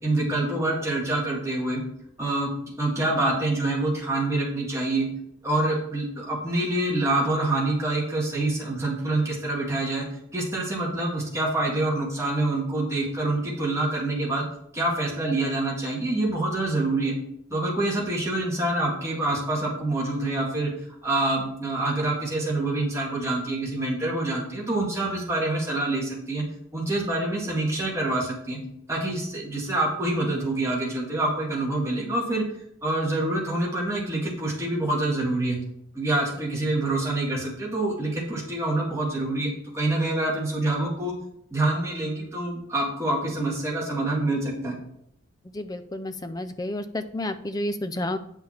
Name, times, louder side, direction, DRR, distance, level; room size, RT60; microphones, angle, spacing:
voice 1, 0.0-1.8 2.2-2.5 2.8-5.1 5.4-10.0 10.3-14.4 14.7-17.1 17.5-20.7 21.0-26.4 26.7-28.6 28.9-32.4 32.8-35.6 35.9-41.1 41.5-44.8, right 2 dB, 15° right, -3 dB, 1.8 m, -26 dB
voice 2, 45.5-48.2, left 1 dB, 20° left, 10 dB, 0.4 m, -30 dB
8.8 x 5.8 x 4.3 m, 0.74 s
head